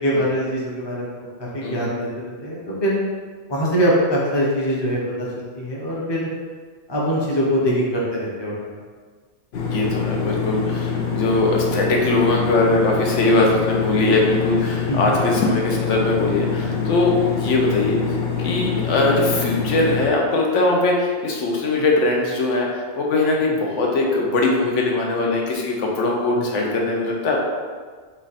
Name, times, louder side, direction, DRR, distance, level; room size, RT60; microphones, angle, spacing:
voice 1, 0.0-1.1 1.4-3.0 3.5-6.3 6.9-8.8 14.9-15.1, equal, 25° left, -5 dB, 0.7 m, -23 dB
sound 1, 9.5-20.1, left 6 dB, 65° left, 0.8 m, -25 dB
voice 2, 9.7-27.4, left 2 dB, 85° left, -1 dB, 1.1 m, -21 dB
4.3 x 2.5 x 4.0 m, 1.5 s
omnidirectional pair, 1.2 m